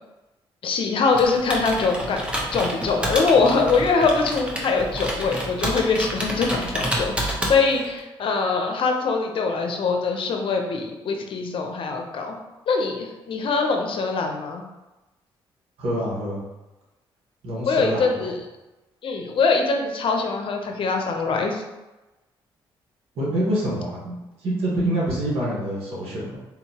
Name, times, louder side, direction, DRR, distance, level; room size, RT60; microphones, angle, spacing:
voice 1, 0.6-2.3 2.5-12.3 12.7-14.6 17.7-18.4 19.0-21.6, left 4 dB, 60° left, 3 dB, 0.6 m, -23 dB
Computer keyboard, 1.1-8.0, equal, 10° right, 0.8 m, -29 dB
voice 2, 15.8-16.4 17.4-18.2 23.1-26.4, right 1 dB, 80° right, -6 dB, 1.3 m, -26 dB
3.9 x 2.8 x 2.8 m, 1.1 s
cardioid pair, 75°, 10 cm